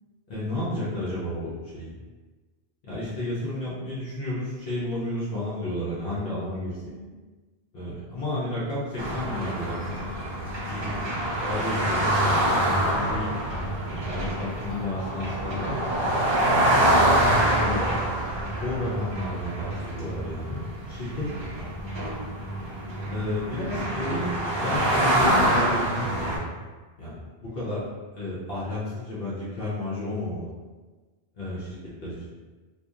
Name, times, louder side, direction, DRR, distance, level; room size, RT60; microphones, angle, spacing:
voice 1, 0.3-1.9 2.8-6.8 7.7-13.3 13.8-15.9 17.4-18.0 18.6-21.7 23.1-26.7 27.0-27.8 28.1-30.5 31.3-31.8 32.0-32.2, left 1 dB, 65° left, -9 dB, 0.9 m, -32 dB
voice 2, 6.7-7.2 14.2-14.4 22.7-23.5 27.5-27.9, right 1 dB, 30° right, -9 dB, 1.0 m, -47 dB
sound 1, 9.0-26.4, right 1 dB, 45° right, 0.3 m, -25 dB
2.7 x 2.4 x 2.4 m, 1.3 s
omnidirectional pair, 1.1 m